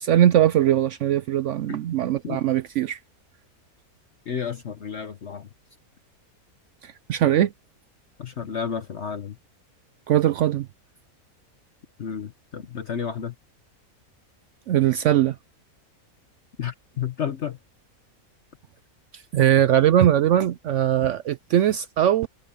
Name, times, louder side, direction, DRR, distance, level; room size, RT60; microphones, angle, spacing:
voice 1, 0.0-3.0 6.8-7.5 10.1-10.7 14.7-15.4 19.3-22.3, right 11 dB, 65° right, 0.8 m, -20 dB
voice 2, 4.2-5.5 8.2-9.4 12.0-13.3 16.6-17.6, left 7 dB, 55° left, 1.2 m, -31 dB
omnidirectional pair, 1.5 m